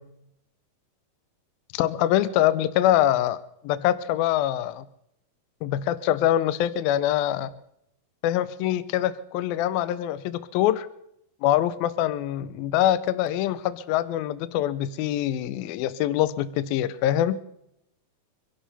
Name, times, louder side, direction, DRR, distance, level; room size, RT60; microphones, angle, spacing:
voice 1, 1.7-3.4 3.6-4.8 5.6-7.5 8.2-10.9 11.4-17.4, left 12 dB, 75° left, 15 dB, 2.3 m, -24 dB
26.5 x 11.5 x 4.1 m, 0.77 s
omnidirectional pair, 4.5 m